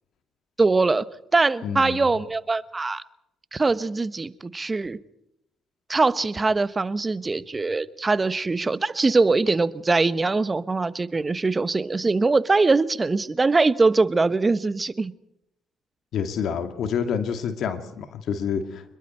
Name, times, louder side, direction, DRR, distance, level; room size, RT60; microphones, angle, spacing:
voice 1, 0.6-1.0 1.3-3.0 3.5-5.0 5.9-15.1, right 3 dB, 30° right, 15 dB, 1.2 m, -22 dB
voice 2, 1.6-2.1 16.1-18.8, left 7 dB, 65° left, 8 dB, 2.4 m, -28 dB
26.5 x 22.0 x 4.5 m, 0.83 s
hypercardioid pair, 55°, 0 cm